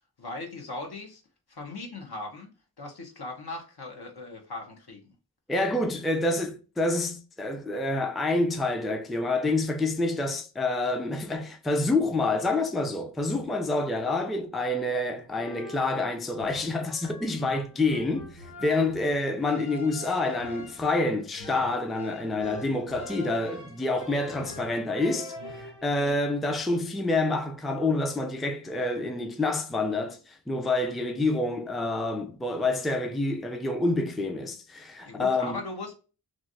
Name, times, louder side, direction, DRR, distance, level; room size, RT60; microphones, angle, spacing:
voice 1, 0.2-1.2 1.5-2.5 2.8-5.0 35.0-36.0, left 2 dB, 75° left, 1.1 m, -38 dB
voice 2, 5.5-35.6, left 2 dB, ahead, 0.3 m, -28 dB
sound 1, 15.2-26.1, left 1 dB, 50° left, 1.0 m, -44 dB
3.2 x 2.6 x 2.6 m
wide cardioid pair, 95°, 39 cm